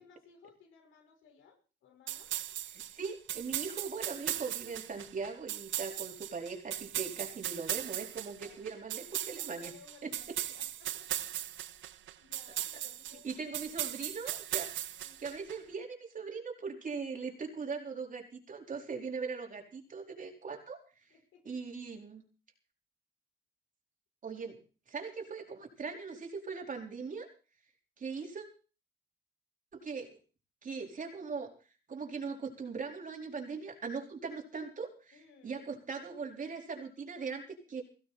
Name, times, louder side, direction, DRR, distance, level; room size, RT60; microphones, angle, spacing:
voice 1, 0.0-2.3 8.3-8.7 9.4-11.1 12.2-13.7 15.0-15.2 21.1-21.6 35.1-35.7, left 6 dB, 80° left, 5 dB, 5.3 m, -60 dB
sound 1, 2.1-15.6, right 12 dB, 75° right, 1.0 m, -38 dB
voice 2, 2.7-9.7 10.0-10.4 13.2-14.7 15.2-20.8 21.4-22.2 24.2-24.6 24.9-27.3 28.0-28.5 29.7-30.2 30.6-31.5 31.9-35.2 35.4-37.8, right 5 dB, 40° right, 2 dB, 4.4 m, -40 dB
16.5 x 16.0 x 4.3 m, 0.37 s
cardioid pair, 90°, 20 cm